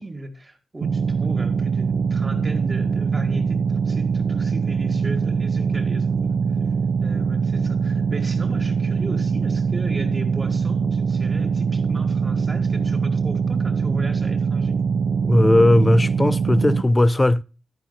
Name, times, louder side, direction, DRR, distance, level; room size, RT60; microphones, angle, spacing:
voice 1, 0.0-6.2 7.0-14.8, right 1 dB, 30° right, 2.0 m, -35 dB
sound 1, 0.8-16.8, right 5 dB, 65° right, 0.6 m, -22 dB
voice 2, 15.3-17.4, left 1 dB, 20° left, 0.5 m, -17 dB
11.5 x 4.6 x 5.7 m
cardioid pair, 65°, 0 cm